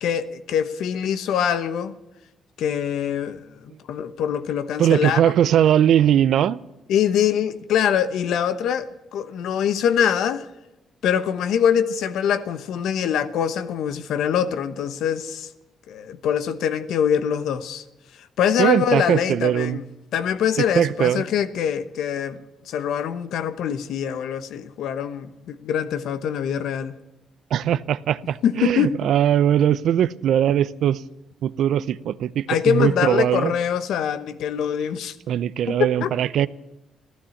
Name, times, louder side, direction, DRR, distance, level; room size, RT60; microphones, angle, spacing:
voice 1, 0.0-1.9 2.6-3.5 3.9-5.3 6.9-10.5 11.0-15.5 15.9-17.8 18.4-19.8 20.1-22.4 22.7-26.9 28.4-29.1 32.5-35.2 35.7-36.1, left 8 dB, 80° left, 1.0 m, -24 dB
voice 2, 4.8-6.6 18.6-19.8 20.6-21.2 27.5-31.0 31.4-33.5 35.3-36.5, right 10 dB, 70° right, 0.6 m, -20 dB
14.5 x 12.5 x 7.2 m
cardioid pair, 90°, 0 cm